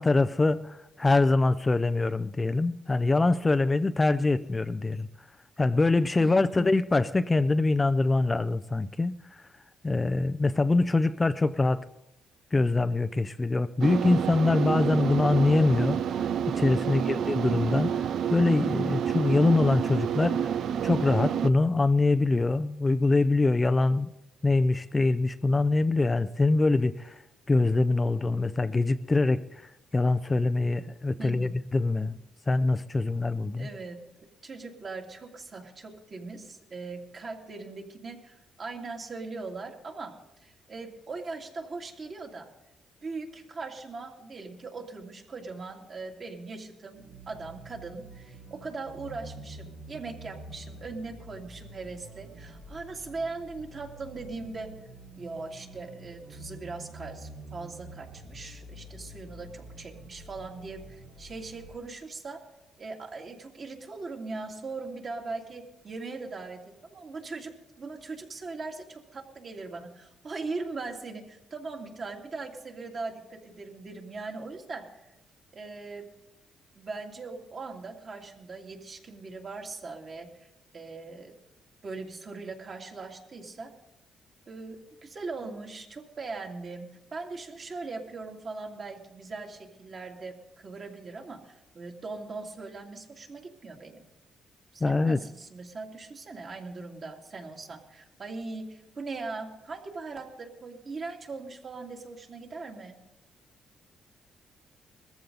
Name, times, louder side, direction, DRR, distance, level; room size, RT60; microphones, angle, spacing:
voice 1, 0.0-5.1 5.6-9.4 9.8-11.9 12.5-16.3 16.6-20.5 20.8-24.1 24.4-27.2 27.5-32.2 32.5-33.7 94.8-95.2, left 3 dB, 20° left, 0.5 m, -24 dB
sound 1, 13.8-21.5, right 8 dB, 70° right, 0.5 m, -29 dB
voice 2, 31.2-31.5 33.6-34.0 34.4-42.5 43.0-54.7 55.1-62.4 62.8-75.0 75.5-76.1 76.7-80.5 80.7-81.3 81.8-83.7 84.5-94.1 94.7-103.0, right 3 dB, 45° right, 2.6 m, -40 dB
sound 2, 46.9-61.7, right 1 dB, 90° right, 5.3 m, -47 dB
21.0 x 14.5 x 4.0 m
cardioid pair, 90°, 0 cm